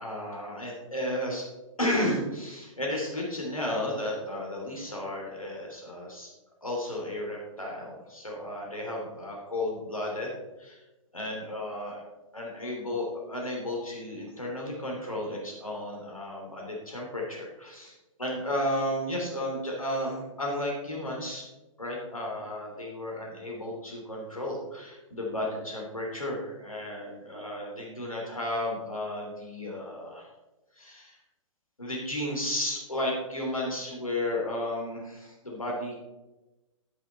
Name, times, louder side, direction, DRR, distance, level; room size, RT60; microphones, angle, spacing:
voice 1, 0.0-1.5 1.8-6.3 6.6-10.3 10.6-10.8 11.1-12.0 12.3-21.4 21.8-30.3 30.8-31.2 31.8-36.0, left 1 dB, 90° left, -2 dB, 3.0 m, -33 dB
12.5 x 5.8 x 4.1 m, 1.1 s
figure-of-eight pair, 120°, 17 cm